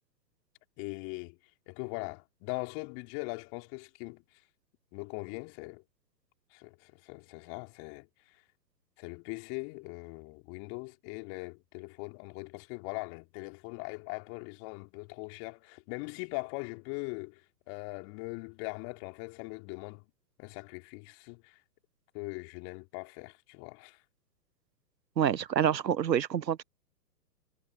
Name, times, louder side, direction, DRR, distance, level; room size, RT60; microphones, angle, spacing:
voice 1, 0.8-1.4 1.7-4.2 4.9-5.8 6.5-8.4 9.0-17.4 17.7-20.0 20.4-21.6 22.1-24.0, left 35 dB, 35° left, 3.4 m, -41 dB
voice 2, 25.2-26.6, right 9 dB, 80° right, 0.9 m, -27 dB
figure-of-eight pair, 120°, 50 cm